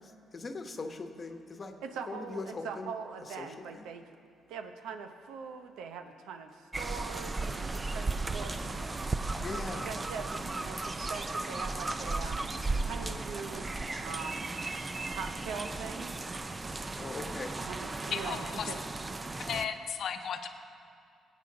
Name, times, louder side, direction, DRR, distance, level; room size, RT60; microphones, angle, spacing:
voice 1, 0.3-1.7 2.1-2.9 9.4-9.9 17.0-17.5, left 3 dB, 35° left, 5 dB, 1.0 m, -40 dB
voice 2, 1.8-4.1 4.5-9.1 9.7-12.4 12.9-14.6 15.1-16.2 17.6-18.8, right 5 dB, 90° right, 7 dB, 0.8 m, -42 dB
sound 1, 6.7-19.7, right 3 dB, 25° right, 0.5 m, -35 dB
voice 3, 18.1-18.7 19.4-20.5, left 7 dB, 65° left, 7 dB, 0.8 m, -35 dB
19.5 x 8.3 x 3.9 m, 2.4 s
cardioid pair, 90°, 0 cm